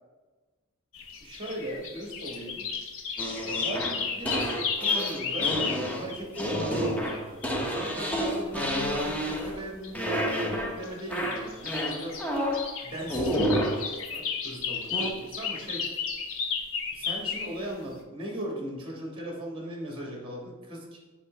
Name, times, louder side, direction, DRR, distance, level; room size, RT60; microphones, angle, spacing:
sound 1, 0.9-8.2 9.2-9.5 9.7-10.4 10.8-17.6, left 5 dB, 60° left, 0.7 m, -33 dB
voice 1, 1.2-2.7 3.4-12.2 12.8-15.9 16.9-21.0, right 1 dB, 25° right, -1 dB, 1.5 m, -38 dB
sound 2, 3.2-9.7 9.9-10.8 11.1-12.7 13.1-13.8 14.9-15.1, equal, 5° left, 0.6 m, -29 dB
8.9 x 3.9 x 3.2 m, 1.3 s
head